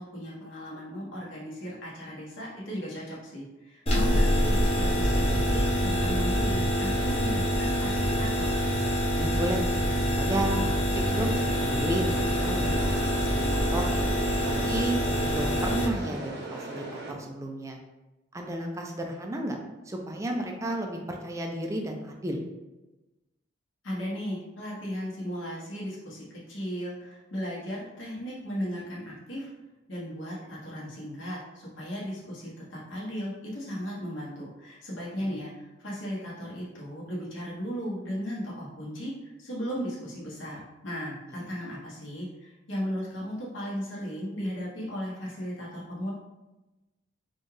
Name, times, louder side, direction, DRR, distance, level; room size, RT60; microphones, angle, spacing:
voice 1, 0.0-8.5 23.8-29.5 29.9-46.1, equal, 70° left, -6 dB, 1.2 m, -36 dB
sound 1, 3.9-15.9, equal, 30° left, 0.8 m, -26 dB
voice 2, 9.1-9.6 10.2-10.8 11.2-13.9 14.4-17.8 18.3-19.6 19.9-22.4 35.2-35.4, right 1 dB, 15° right, 1 dB, 0.4 m, -33 dB
sound 2, 10.9-17.1, right 2 dB, 55° right, 0.6 m, -38 dB
4.3 x 2.4 x 3.2 m, 1.1 s
head